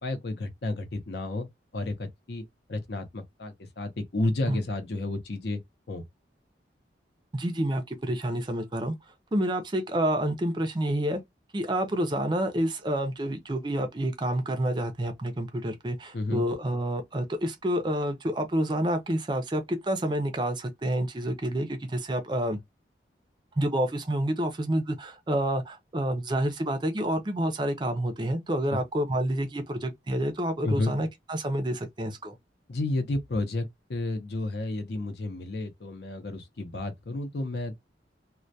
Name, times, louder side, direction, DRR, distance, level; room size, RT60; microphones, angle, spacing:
voice 1, 0.0-1.5 1.7-2.4 2.7-5.6 5.9-6.0 16.1-16.4 28.7-28.8 30.6-30.9 32.7-37.8, left 2 dB, 65° left, 0.6 m, -31 dB
voice 2, 7.3-9.0 9.3-11.2 11.5-22.6 23.6-32.4, right 1 dB, 25° right, 0.4 m, -28 dB
2.2 x 2.1 x 2.6 m
head